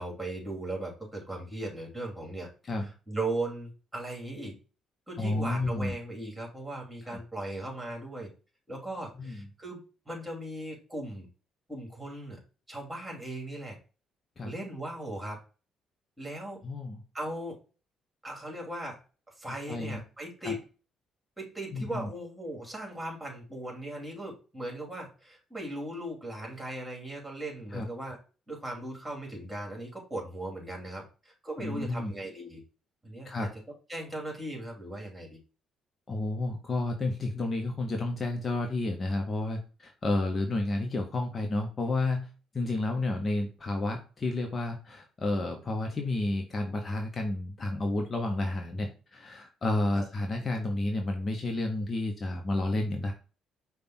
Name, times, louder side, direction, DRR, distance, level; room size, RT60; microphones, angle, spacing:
voice 1, 0.0-2.5 2.8-4.6 5.1-8.3 8.7-11.3 11.7-12.4 12.7-13.8 14.4-15.4 16.2-16.6 17.1-17.6 18.2-19.0 19.4-20.6 21.4-28.2 28.5-32.6 33.0-33.5 33.9-35.4 49.9-50.1, right 1 dB, 15° right, 0 dB, 2.6 m, -38 dB
voice 2, 5.2-5.9 7.1-7.2 9.2-9.4 14.4-14.5 16.6-17.0 19.7-20.0 20.4-20.5 21.7-22.1 27.7-27.9 31.6-32.1 33.2-33.5 36.1-42.3 42.5-53.1, left 2 dB, 40° left, 3 dB, 0.9 m, -31 dB
5.1 x 2.3 x 4.2 m, 0.35 s
hypercardioid pair, 45°, 0 cm